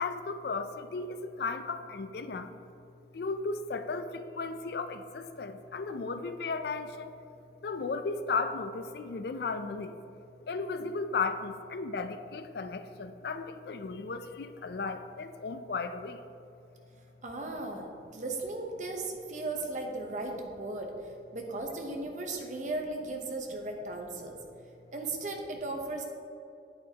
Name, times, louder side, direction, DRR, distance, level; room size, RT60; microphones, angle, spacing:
voice 1, 0.0-2.6 3.1-7.1 7.6-9.9 10.5-16.2, left 4 dB, 60° left, 10 dB, 0.4 m, -35 dB
voice 2, 17.2-24.4 24.9-26.0, right 2 dB, 45° right, 2 dB, 0.9 m, -36 dB
8.6 x 8.4 x 2.9 m, 2.7 s
head